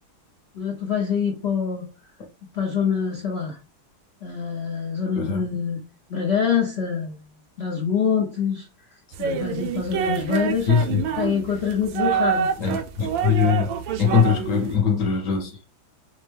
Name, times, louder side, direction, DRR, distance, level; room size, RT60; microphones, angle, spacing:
voice 1, 0.5-1.8 2.5-3.6 4.2-5.8 6.1-7.1 7.6-8.7 9.2-10.7 11.2-12.5 14.1-14.4, left 7 dB, 70° left, 0.6 m, -25 dB
voice 2, 5.1-5.5 10.7-11.0 12.6-13.7 14.0-15.7, left 6 dB, 55° left, 1.0 m, -21 dB
sound 1, 9.1-14.8, right 7 dB, 75° right, 1.2 m, -27 dB
5.1 x 2.2 x 3.3 m
omnidirectional pair, 2.2 m